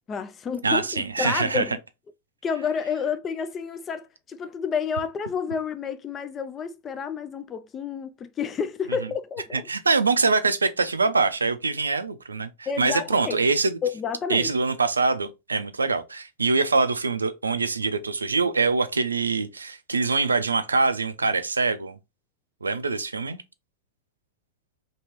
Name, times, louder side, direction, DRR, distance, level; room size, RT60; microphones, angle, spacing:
voice 1, 0.1-1.8 2.4-9.7 12.7-13.5 13.8-14.5, left 6 dB, 25° left, 0.3 m, -30 dB
voice 2, 0.6-1.6 9.5-13.8 14.3-22.0 22.6-23.4, right 4 dB, 75° right, 0.3 m, -24 dB
2.9 x 2.8 x 2.9 m
figure-of-eight pair, 90°, 0 cm